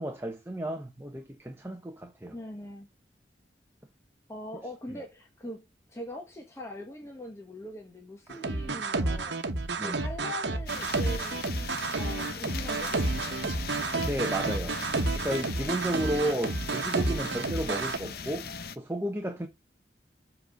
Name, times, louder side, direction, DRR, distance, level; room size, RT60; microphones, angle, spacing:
voice 1, 0.0-2.3 9.8-10.0 14.0-14.8 15.1-18.5 18.8-19.5, right 1 dB, 15° right, 1.0 m, -33 dB
voice 2, 2.3-2.9 4.3-9.4 9.8-11.5 12.0-13.7, left 1 dB, 15° left, 1.4 m, -42 dB
sound 1, 8.3-18.0, right 3 dB, 80° right, 1.1 m, -30 dB
sound 2, 10.7-18.8, left 5 dB, 60° left, 0.8 m, -39 dB
7.7 x 4.2 x 5.1 m
head